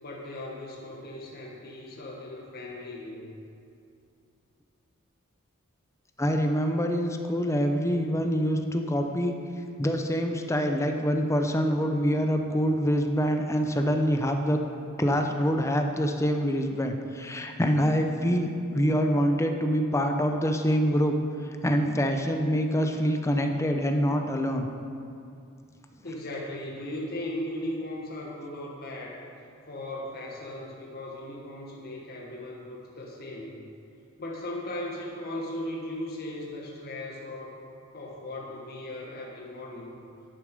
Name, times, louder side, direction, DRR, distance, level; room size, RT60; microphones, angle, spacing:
voice 1, 0.0-3.2 26.0-29.2 29.7-33.5 34.2-37.6 37.9-40.0, left 1 dB, 45° left, -2 dB, 1.4 m, -37 dB
voice 2, 6.2-9.4 9.8-14.6 15.0-21.2 21.4-24.7, equal, 15° left, 4 dB, 0.6 m, -25 dB
10.0 x 8.3 x 5.2 m, 2.5 s
head